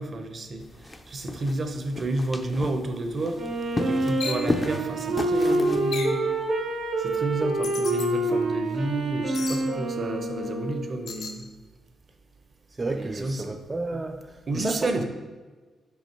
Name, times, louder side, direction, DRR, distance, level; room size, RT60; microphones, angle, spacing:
voice 1, 0.0-3.4 3.9-6.2 7.0-11.5 12.9-13.5 14.5-15.0, right 2 dB, 45° right, 6 dB, 0.8 m, -30 dB
sound 1, 0.6-6.0, left 2 dB, 25° left, 0.6 m, -34 dB
Wind instrument woodwind instrument, 3.3-11.0, right 2 dB, 80° right, 1.4 m, -27 dB
sound 2, 4.2-4.5 5.9-6.2 7.6-8.1 9.3-9.6 11.1-11.4, left 4 dB, 75° left, 0.9 m, -34 dB
voice 2, 12.7-15.0, right 2 dB, 30° right, 3 dB, 0.4 m, -32 dB
5.5 x 5.1 x 4.5 m, 1.4 s
cardioid pair, 75°, 0 cm